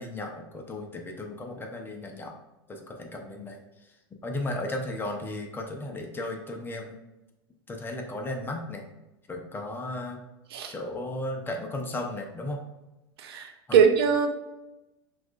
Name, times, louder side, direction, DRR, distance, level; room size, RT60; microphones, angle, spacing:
voice 1, 0.0-2.4 2.7-3.6 4.2-7.0 7.7-8.8 9.3-10.2 10.7-12.6 13.7-13.8, left 1 dB, 15° left, 2 dB, 0.7 m, -35 dB
voice 2, 13.2-14.3, right 7 dB, 75° right, 5 dB, 0.6 m, -22 dB
5.9 x 2.5 x 2.4 m, 1.0 s
hypercardioid pair, 105°, 13 cm